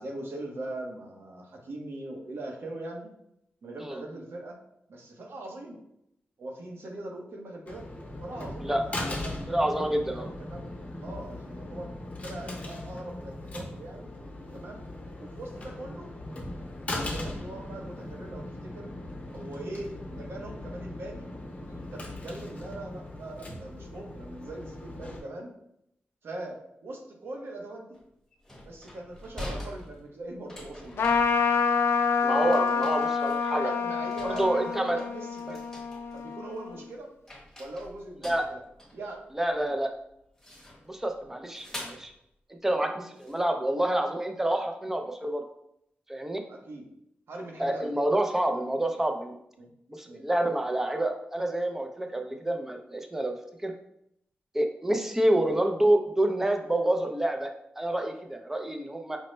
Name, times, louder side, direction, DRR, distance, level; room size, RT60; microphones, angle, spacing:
voice 1, 0.0-3.1 3.6-4.6 4.9-5.8 6.4-7.8 8.2-9.5 10.1-10.7 11.0-11.9 12.2-14.1 14.5-14.8 15.2-16.1 16.8-18.9 19.3-25.5 26.2-28.0 28.6-31.1 32.8-33.1 33.6-35.6 36.1-37.1 37.6-38.6 38.9-39.2 39.5-39.7 46.5-46.9 47.3-48.0 49.6-49.7 50.0-50.2 55.5-55.6, right 2 dB, 75° right, 1 dB, 0.8 m, -41 dB
sound 1, 7.7-25.2, left 1 dB, 35° left, 0.7 m, -39 dB
voice 2, 9.5-10.3 32.2-33.7 34.2-35.0 35.5-35.6 38.2-38.4 39.4-39.9 40.9-42.1 42.6-45.4 46.1-46.4 47.6-49.3 49.9-53.3 53.6-53.7 54.5-59.2, right 1 dB, 10° right, 4 dB, 0.4 m, -28 dB
sound 2, 27.9-28.0 28.3-32.0 32.3-33.7 34.1-36.2 36.6-37.0 37.3-39.6 40.4-41.0 41.5-42.1 43.2-43.5, left 1 dB, 5° left, 1.2 m, -45 dB
Trumpet, 31.0-36.8, left 5 dB, 75° left, 0.4 m, -27 dB
5.1 x 2.0 x 3.1 m, 0.77 s
wide cardioid pair, 145°, 4 cm